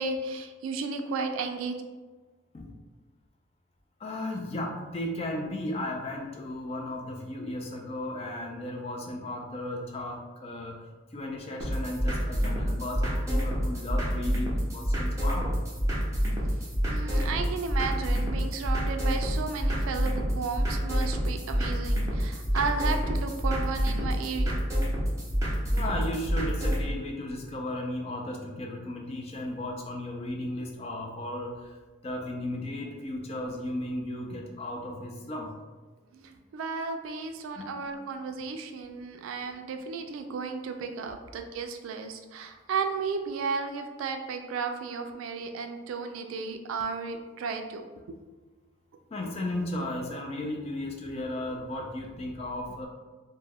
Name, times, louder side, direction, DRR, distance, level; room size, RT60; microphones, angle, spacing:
voice 1, 0.0-1.8 16.9-24.6 36.1-47.8, right 4 dB, 85° right, 6 dB, 0.3 m, -34 dB
voice 2, 4.0-10.8 11.1-15.6 25.7-31.8 32.0-35.5 37.6-37.9 49.1-52.9, left 1 dB, 30° left, 1 dB, 0.3 m, -35 dB
sound 1, 11.6-26.8, equal, 15° right, 0.6 m, -28 dB
2.1 x 2.1 x 3.4 m, 1.3 s
head